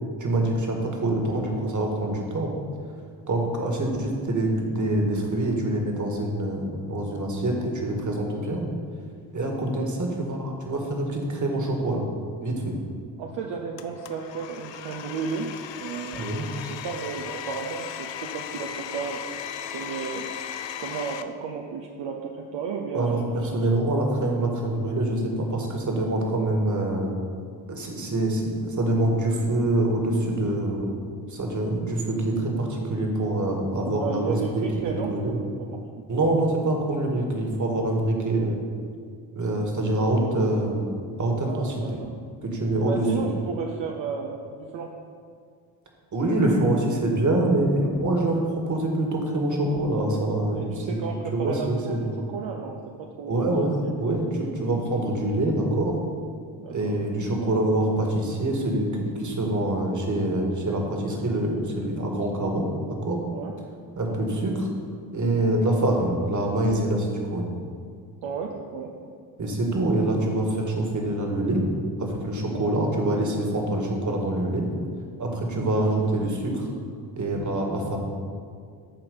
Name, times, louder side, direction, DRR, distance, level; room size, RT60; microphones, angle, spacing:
voice 1, 0.2-2.5 3.3-8.6 9.3-12.0 12.4-12.7 16.1-16.5 22.9-27.1 27.7-30.9 31.3-35.4 36.1-38.6 39.4-42.0 42.4-43.1 46.1-51.0 51.3-52.1 53.3-56.0 56.7-62.7 63.0-63.2 64.0-64.7 65.1-67.5 69.4-71.6 72.0-74.7 75.2-76.7 77.2-78.0, right 1 dB, 35° right, 1 dB, 1.9 m, -25 dB
voice 2, 13.2-15.5 15.8-16.2 16.5-20.2 20.8-23.5 33.7-35.8 41.4-42.1 42.9-45.0 50.5-53.5 53.8-53.9 56.6-57.0 63.3-63.5 64.0-64.2 68.2-68.9, right 6 dB, 65° right, 1 dB, 0.8 m, -33 dB
Domestic sounds home sounds, 13.8-21.2, left 9 dB, 60° left, 0.6 m, -37 dB
7.6 x 4.3 x 6.8 m, 2.1 s
supercardioid pair, 55°, 48 cm